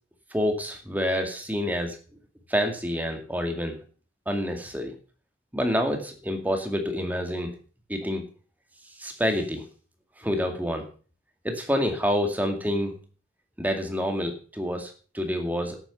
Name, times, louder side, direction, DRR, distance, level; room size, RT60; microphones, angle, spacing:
voice 1, 0.3-2.0 2.5-3.8 4.3-4.9 5.5-7.5 7.9-8.2 9.0-9.6 10.2-10.9 11.4-12.9 13.6-15.8, equal, 10° right, 5 dB, 2.2 m, -27 dB
11.0 x 9.2 x 7.0 m, 0.39 s
head